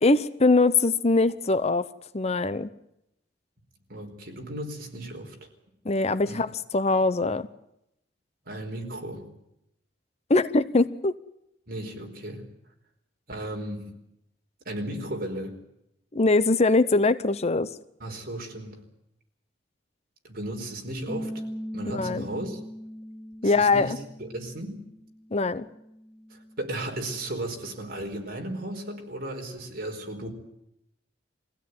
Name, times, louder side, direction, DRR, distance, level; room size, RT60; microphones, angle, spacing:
voice 1, 0.0-1.9 2.1-2.7 5.8-6.5 6.7-7.5 10.3-11.1 16.1-17.7 21.9-22.3 23.4-24.0 25.3-25.7, left 3 dB, 35° left, 13 dB, 0.8 m, -22 dB
voice 2, 3.9-5.5 6.3-6.4 8.4-9.3 11.7-12.5 13.3-14.0 14.6-15.6 18.0-18.9 20.2-21.5 21.7-22.6 23.4-24.9 26.3-30.3, right 1 dB, 55° right, 2 dB, 4.6 m, -35 dB
Bass guitar, 21.1-27.3, equal, 10° left, 2.8 m, -40 dB
23.0 x 16.5 x 9.5 m, 0.82 s
head